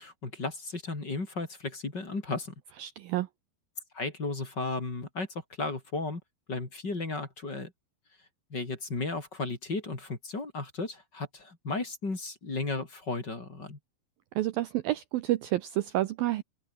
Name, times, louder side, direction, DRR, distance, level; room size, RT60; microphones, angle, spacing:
voice 1, 0.0-2.5 3.9-6.2 6.5-7.7 8.5-13.8, left 3 dB, 25° left, 4.4 m, -34 dB
voice 2, 2.8-3.3 14.4-16.4, right 15 dB, 90° right, 2.0 m, -29 dB
open air
omnidirectional pair, 5.3 m